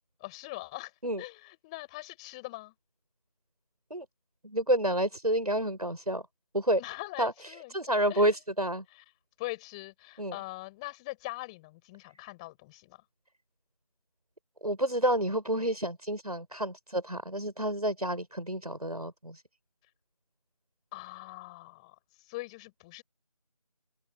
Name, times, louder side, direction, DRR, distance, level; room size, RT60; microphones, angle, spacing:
voice 1, 0.2-0.9 1.2-2.7 6.8-7.8 8.1-8.4 8.9-9.0 9.4-13.0 20.9-22.0 22.3-23.0, left 22 dB, 10° left, 7.9 m, -42 dB
voice 2, 4.4-6.2 6.5-6.8 7.2-7.3 7.7-8.8 10.2-10.4 14.6-19.4, right 1 dB, 85° right, 7.0 m, -29 dB
open air
figure-of-eight pair, 165°, 19 cm